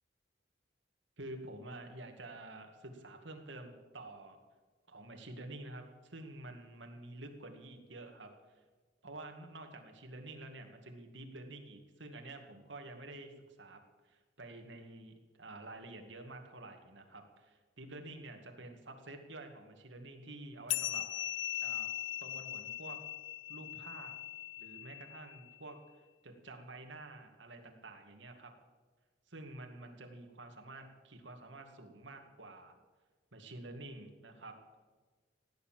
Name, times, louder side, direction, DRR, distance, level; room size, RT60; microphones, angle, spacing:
voice 1, 1.2-4.4 4.9-8.3 9.0-13.3 13.6-21.9 22.2-23.0 23.5-24.1 24.6-25.8 26.2-28.5 29.3-32.8 33.3-34.6, right 2 dB, 85° right, 4 dB, 2.3 m, -49 dB
sound 1, 20.7-25.6, left 14 dB, 85° left, 0.4 m, -40 dB
16.5 x 9.8 x 7.7 m, 1.3 s
head